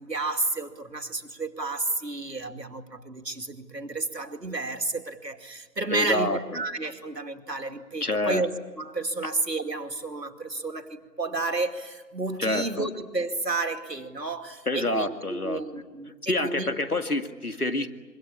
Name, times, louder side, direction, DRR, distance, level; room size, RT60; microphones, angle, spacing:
voice 1, 0.0-16.7, right 3 dB, 75° right, 6 dB, 2.5 m, -31 dB
voice 2, 5.9-6.6 8.0-8.4 12.4-12.9 14.7-15.6 16.3-17.9, left 1 dB, 60° left, 7 dB, 2.2 m, -27 dB
25.5 x 23.5 x 8.6 m, 1.3 s
figure-of-eight pair, 175°, 50 cm